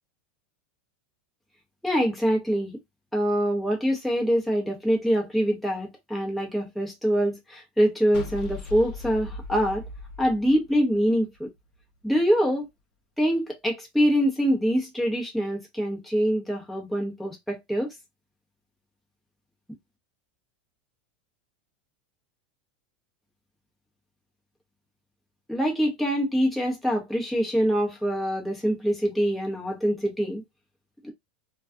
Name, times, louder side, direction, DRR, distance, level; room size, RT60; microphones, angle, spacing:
voice 1, 1.8-2.8 3.1-9.8 10.2-11.5 12.0-12.7 13.2-17.9 25.5-30.4 31.0-31.1, equal, ahead, 0.7 m, -24 dB
sound 1, 8.1-11.4, left 2 dB, 60° left, 0.7 m, -38 dB
2.3 x 2.3 x 2.4 m
supercardioid pair, 125°, 5 cm